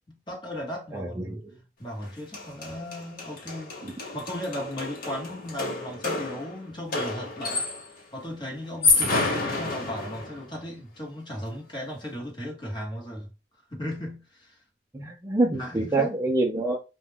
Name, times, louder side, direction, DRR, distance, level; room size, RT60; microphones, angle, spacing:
voice 1, 0.1-1.4 1.8-3.7 4.1-7.7 8.1-13.3 13.7-14.6 15.6-16.1, equal, 25° left, 1.0 m, -36 dB
voice 2, 0.9-1.5 3.8-3.9 14.9-16.8, right 2 dB, 15° right, 0.4 m, -26 dB
sound 1, 2.0-2.1 2.3-8.0 8.6-10.4, left 3 dB, 55° left, 0.8 m, -29 dB
2.3 x 2.1 x 3.3 m
head